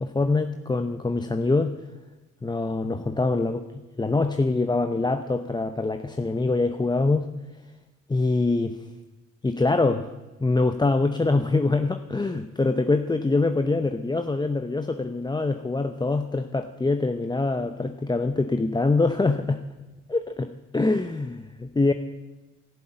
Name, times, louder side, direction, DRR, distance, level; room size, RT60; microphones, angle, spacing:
voice 1, 0.0-1.8 2.4-7.3 8.1-8.8 9.4-10.1 10.4-19.6 20.1-21.9, left 3 dB, 15° left, 8 dB, 0.7 m, -24 dB
12.0 x 11.5 x 8.7 m, 1.2 s
cardioid pair, 90°, 30 cm